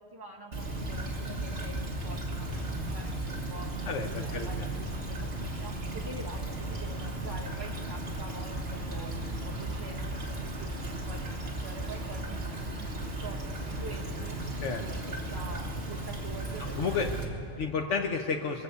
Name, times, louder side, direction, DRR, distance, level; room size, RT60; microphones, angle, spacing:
voice 1, 0.0-2.5 2.9-3.7 4.2-14.4 14.8-17.8, right 2 dB, 20° right, -1 dB, 1.6 m, -46 dB
Stream / Trickle dribble, 0.5-17.3, right 1 dB, 60° right, 1.9 m, -35 dB
voice 2, 3.8-4.7 14.6-14.8 16.8-17.1 17.6-18.6, left 5 dB, 85° left, 2 dB, 1.2 m, -31 dB
24.0 x 8.0 x 6.9 m, 2.7 s
omnidirectional pair, 1.2 m